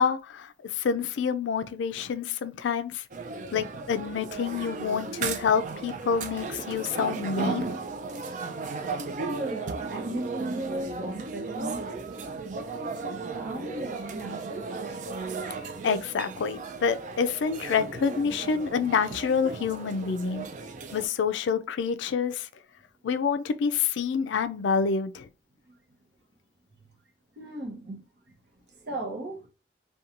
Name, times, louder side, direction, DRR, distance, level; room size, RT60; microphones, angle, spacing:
voice 1, 0.0-3.0 3.5-7.6 15.8-20.4 20.9-22.5 23.0-25.3, left 6 dB, 85° left, 0.3 m, -27 dB
sound 1, 3.1-21.1, right 4 dB, 45° right, 0.4 m, -35 dB
voice 2, 9.2-12.1 12.5-14.7 27.4-28.0 28.7-29.5, right 1 dB, 60° right, 0.7 m, -36 dB
2.8 x 2.2 x 2.5 m
head